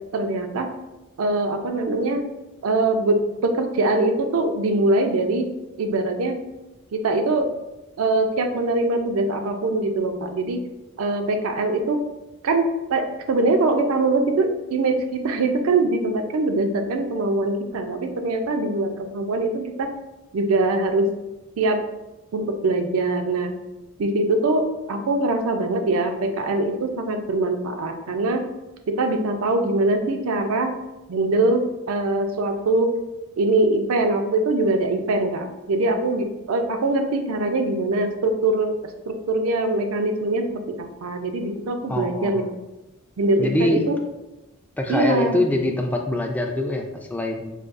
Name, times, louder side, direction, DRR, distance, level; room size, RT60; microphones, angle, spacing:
voice 1, 0.1-0.7 1.2-2.3 2.6-5.5 5.8-6.4 6.9-7.5 8.0-10.6 11.0-12.0 12.4-19.9 20.3-21.1 21.6-21.8 22.3-23.5 24.0-28.5 28.9-30.7 31.1-32.9 33.4-38.8 39.1-42.4 43.2-44.0 44.9-45.4, right 2 dB, 80° right, 5 dB, 0.4 m, -22 dB
voice 2, 41.9-42.4 43.4-43.9 44.8-47.5, left 1 dB, 10° left, 3 dB, 0.3 m, -24 dB
4.8 x 2.3 x 2.4 m, 1.0 s
head